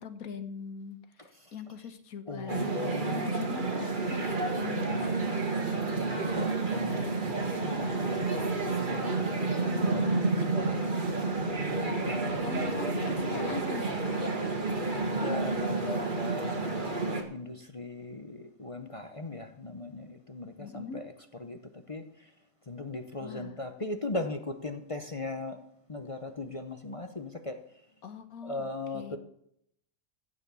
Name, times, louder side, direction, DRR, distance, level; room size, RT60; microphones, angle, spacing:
voice 1, 0.0-4.2 4.5-5.5 12.5-14.2 15.2-15.9 20.6-21.0 23.2-23.7 28.0-29.2, left 6 dB, 65° left, 10 dB, 1.5 m, -42 dB
voice 2, 2.3-3.3 5.0-5.3 5.9-10.9 11.7-13.6 14.9-17.0 17.3-21.6 21.9-22.0 22.7-25.6 25.9-27.6 28.4-29.2, left 2 dB, 30° left, 7 dB, 0.6 m, -39 dB
sound 1, 2.5-17.2, right 3 dB, 35° right, 1.7 m, -30 dB
15.0 x 6.9 x 6.9 m, 0.71 s
omnidirectional pair, 1.6 m